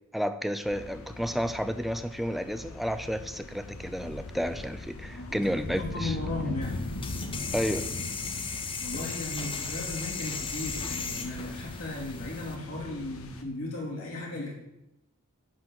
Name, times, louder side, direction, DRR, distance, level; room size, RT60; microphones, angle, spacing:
voice 1, 0.1-6.2 7.5-7.9, equal, ahead, 10 dB, 0.5 m, -31 dB
sound 1, 0.6-13.4, left 2 dB, 85° left, 1.1 m, -40 dB
voice 2, 5.8-6.8 8.8-14.5, left 2 dB, 65° left, -4 dB, 3.0 m, -36 dB
sound 2, 6.6-12.6, left 5 dB, 25° left, 0.8 m, -36 dB
11.5 x 4.0 x 7.3 m, 0.89 s
head